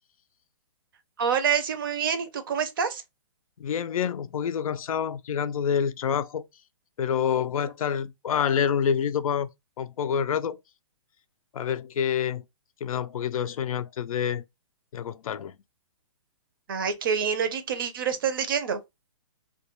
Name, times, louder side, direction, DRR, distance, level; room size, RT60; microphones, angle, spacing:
voice 1, 1.2-3.0 16.7-18.8, right 7 dB, 40° right, 0.4 m, -27 dB
voice 2, 3.6-6.4 7.0-9.5 9.8-10.6 11.5-12.4 12.8-14.4 14.9-15.5, left 8 dB, 85° left, 0.4 m, -27 dB
2.2 x 2.2 x 2.9 m
hypercardioid pair, 170°, 17 cm